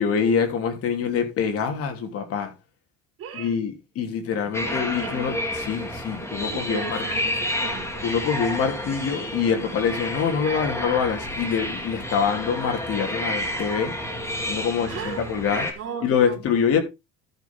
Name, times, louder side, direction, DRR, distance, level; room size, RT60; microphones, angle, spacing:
voice 1, 0.0-2.5 3.3-7.0 8.0-14.0 14.5-15.7 16.0-16.8, left 6 dB, 50° left, 3.2 m, -25 dB
voice 2, 3.2-3.6 4.5-5.2 6.4-8.0 10.4-10.7 14.9-16.5, right 7 dB, 50° right, 5.3 m, -37 dB
sound 1, 4.5-15.7, left 1 dB, 10° left, 2.8 m, -30 dB
13.5 x 6.8 x 3.6 m
cardioid pair, 130°, 30 cm